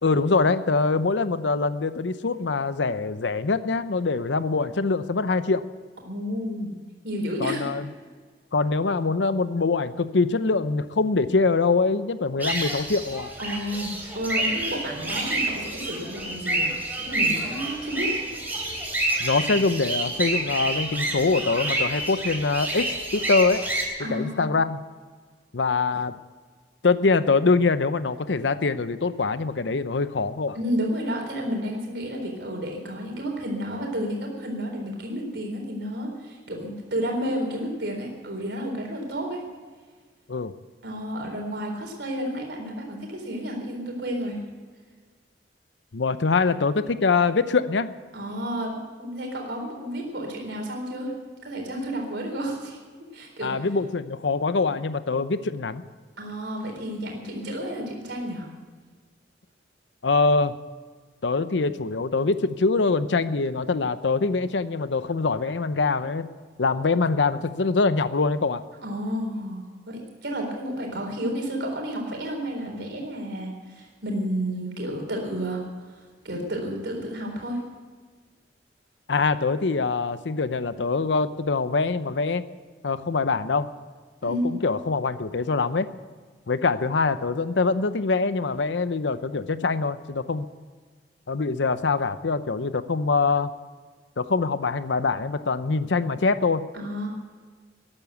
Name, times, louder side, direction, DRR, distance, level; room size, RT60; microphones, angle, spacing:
voice 1, 0.0-5.6 7.4-7.9 8.5-13.3 19.2-23.7 24.1-24.8 25.5-26.1 26.8-30.6 40.3-40.5 45.9-47.9 53.4-55.8 60.0-60.5 61.2-66.3 66.6-68.6 79.1-82.4 82.8-83.7 84.2-85.9 86.5-90.4 91.3-93.5 94.2-96.6, left 4 dB, 90° left, 13 dB, 0.7 m, -24 dB
voice 2, 6.1-6.7 7.0-7.7 13.4-18.2 24.0-24.4 30.5-39.4 40.8-44.4 48.1-51.1 51.4-52.8 53.1-53.6 56.2-58.5 68.8-75.6 75.9-77.6 84.2-84.6 96.7-97.1, equal, 70° right, 1 dB, 4.0 m, -31 dB
sound 1, 12.4-23.8, right 2 dB, 10° right, 3.6 m, -28 dB
14.5 x 11.0 x 8.1 m, 1.5 s
head